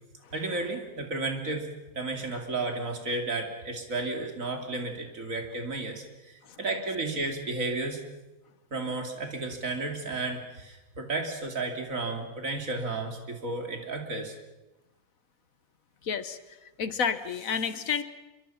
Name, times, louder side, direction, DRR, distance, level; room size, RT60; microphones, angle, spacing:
voice 1, 0.3-1.7 1.9-8.0 8.7-14.3, right 2 dB, 70° right, 4 dB, 3.2 m, -33 dB
voice 2, 16.0-18.0, left 6 dB, 75° left, 12 dB, 1.6 m, -31 dB
26.5 x 23.5 x 5.7 m, 1.1 s
omnidirectional pair, 1.4 m